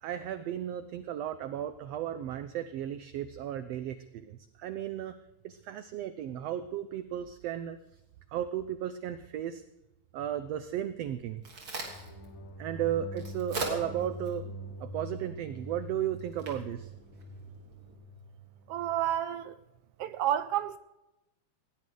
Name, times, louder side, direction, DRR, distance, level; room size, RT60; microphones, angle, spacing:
voice 1, 0.0-5.1 5.4-7.8 8.3-9.6 10.1-11.4 12.0-12.1 12.6-14.5 14.8-16.9, right 10 dB, 70° right, 1.7 m, -35 dB
Crack, 11.0-17.9, right 3 dB, 40° right, 3.8 m, -43 dB
sound 1, 11.8-19.0, equal, 75° left, 3.7 m, -44 dB
voice 2, 18.7-19.6 20.0-20.8, right 11 dB, 90° right, 1.3 m, -30 dB
19.5 x 17.0 x 3.9 m
omnidirectional pair, 3.4 m